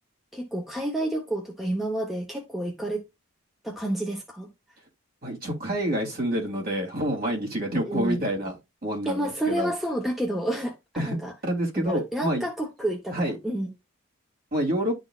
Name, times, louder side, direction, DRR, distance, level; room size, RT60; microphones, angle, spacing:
voice 1, 0.3-3.0 3.6-4.5 7.7-8.2 9.0-11.3 11.7-13.7, right 1 dB, ahead, 1.0 m, -29 dB
voice 2, 5.2-8.6 8.8-9.7 11.0-11.2 11.4-12.5 13.1-13.4 14.5-15.0, right 1 dB, 45° right, 3.0 m, -27 dB
11.0 x 4.0 x 2.4 m
head